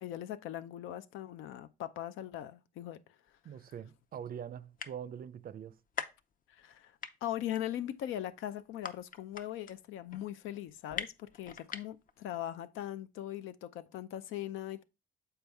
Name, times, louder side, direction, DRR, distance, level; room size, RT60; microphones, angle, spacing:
voice 1, 0.0-3.0 6.5-14.8, left 12 dB, 90° left, 0.5 m, -40 dB
sound 1, 3.3-3.4 4.0-4.1 4.3-4.4 4.6-5.3 5.7-6.8 7.0-12.2, left 6 dB, 45° left, 0.6 m, -42 dB
voice 2, 3.4-5.8, right 8 dB, 50° right, 0.4 m, -43 dB
6.9 x 4.4 x 3.4 m
cardioid pair, 90°, 20 cm